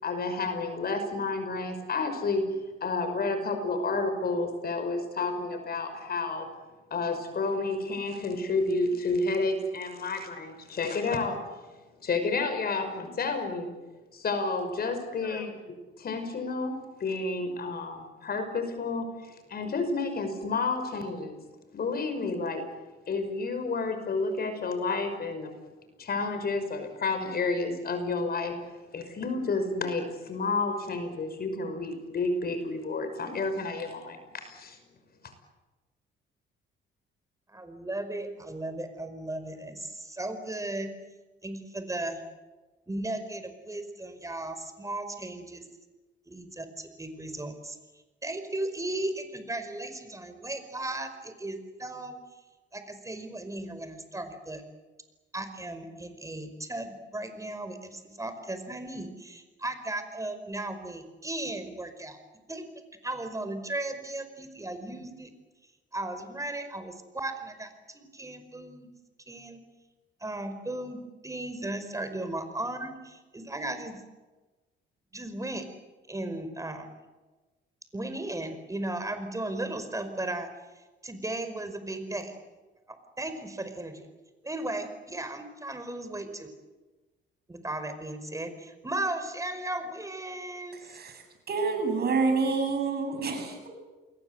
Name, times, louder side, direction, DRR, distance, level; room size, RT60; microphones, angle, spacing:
voice 1, 0.0-2.4 2.8-6.5 6.9-11.4 12.0-13.7 14.1-21.4 21.7-22.7 23.1-25.5 26.0-28.6 28.9-34.8 35.2-35.3, left 3 dB, 50° left, 8 dB, 5.8 m, -30 dB
voice 2, 37.5-40.9 41.4-42.2 42.9-45.7 46.3-47.8 48.2-52.2 52.7-54.6 55.3-62.2 62.5-62.7 63.0-65.3 65.9-68.9 69.3-69.6 70.2-74.0 75.1-75.7 76.1-76.9 77.9-80.5 81.0-82.3 82.9-84.1 84.4-86.5 87.5-90.8, right 2 dB, 15° right, 9 dB, 5.1 m, -36 dB
voice 3, 90.7-93.7, right 4 dB, 55° right, 6 dB, 7.8 m, -28 dB
29.0 x 21.5 x 8.1 m, 1.2 s
cardioid pair, 90°, 20 cm